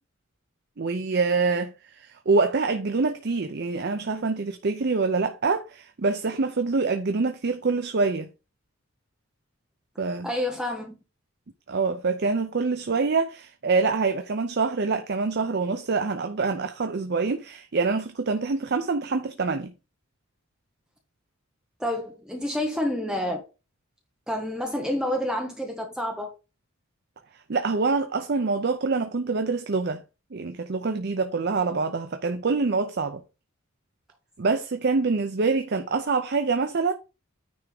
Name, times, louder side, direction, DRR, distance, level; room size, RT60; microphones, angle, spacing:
voice 1, 0.8-8.3 10.0-10.3 11.7-19.7 27.5-30.0 30.3-33.2 34.4-36.9, right 4 dB, 50° right, 0.6 m, -25 dB
voice 2, 10.2-11.0 21.8-23.4 24.3-26.3, left 1 dB, 5° right, 1.2 m, -28 dB
9.4 x 3.5 x 4.9 m
head